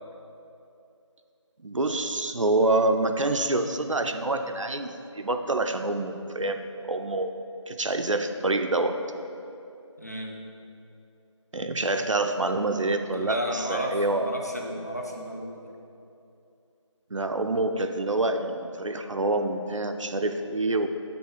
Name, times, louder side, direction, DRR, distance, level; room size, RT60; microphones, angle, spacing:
voice 1, 1.6-7.3 7.7-9.0 11.5-14.3 17.1-20.9, right 2 dB, 80° right, 7 dB, 0.6 m, -27 dB
voice 2, 10.0-10.4 13.1-15.6, equal, 35° left, 0 dB, 0.6 m, -33 dB
7.0 x 3.8 x 6.3 m, 2.7 s
figure-of-eight pair, 175°, 16 cm